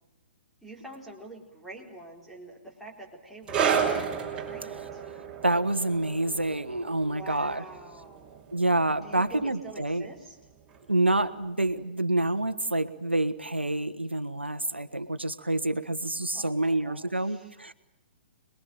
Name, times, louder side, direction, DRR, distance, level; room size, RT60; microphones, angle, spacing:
voice 1, 0.6-3.9 4.3-5.0 7.0-8.6 9.0-10.4 16.3-17.6, right 2 dB, ahead, -1 dB, 4.0 m, -46 dB
sound 1, 3.5-10.5 10.7-11.0 11.7-11.8, right 7 dB, 15° right, 5.8 m, -32 dB
voice 2, 5.4-7.6 8.5-10.1 10.9-17.7, right 2 dB, 85° right, 11 dB, 1.5 m, -27 dB
26.5 x 21.5 x 9.2 m, 0.89 s
figure-of-eight pair, 120°, 6 cm